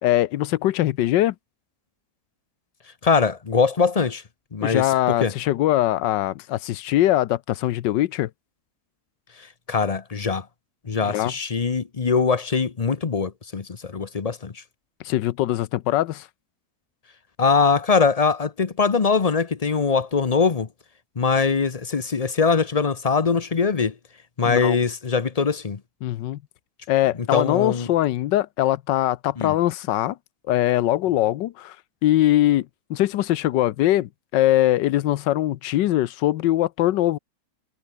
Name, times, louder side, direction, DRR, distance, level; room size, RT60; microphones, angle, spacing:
voice 1, 0.0-1.3 4.6-8.3 11.0-11.3 15.0-16.3 24.4-24.8 26.0-26.4 26.9-30.2 30.5-31.8 32.0-37.2, left 14 dB, 85° left, 1.4 m, -22 dB
voice 2, 3.0-4.2 4.5-5.3 9.7-10.4 10.9-14.6 17.4-20.7 21.2-23.9 24.4-25.8 27.3-27.9 29.4-29.6, left 5 dB, 35° left, 0.6 m, -22 dB
omnidirectional pair, 1.9 m